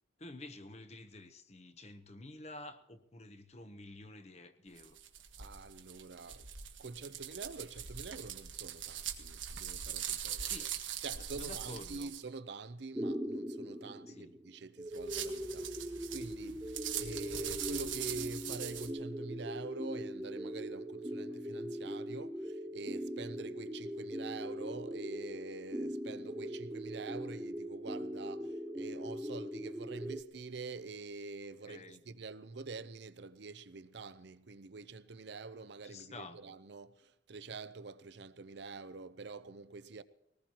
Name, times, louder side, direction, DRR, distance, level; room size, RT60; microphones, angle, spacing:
voice 1, 0.2-5.0 10.2-10.7 11.3-12.1 14.1-14.3 31.7-32.0 35.8-36.4, left 2 dB, 35° left, 0.8 m, -50 dB
sound 1, 4.8-12.2 14.9-18.9, right 9 dB, 80° right, 1.4 m, -42 dB
voice 2, 5.4-6.5 6.8-10.7 11.0-40.0, right 3 dB, 60° right, 0.6 m, -46 dB
sound 2, 12.9-30.2, equal, 10° right, 0.6 m, -41 dB
21.0 x 19.0 x 2.9 m
head